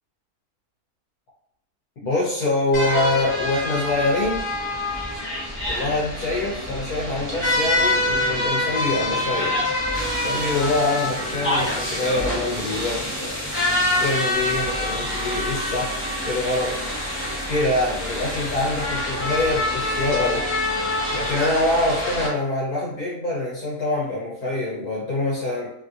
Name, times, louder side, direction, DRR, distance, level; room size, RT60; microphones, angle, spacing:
voice 1, 2.0-4.4 5.7-9.6 10.2-13.4 14.0-16.8 17.5-20.4 21.1-25.7, left 2 dB, 70° left, -6 dB, 1.3 m, -25 dB
sound 1, 2.7-22.3, left 1 dB, 15° left, 0.4 m, -26 dB
3.1 x 2.6 x 2.4 m, 0.71 s
omnidirectional pair, 1.7 m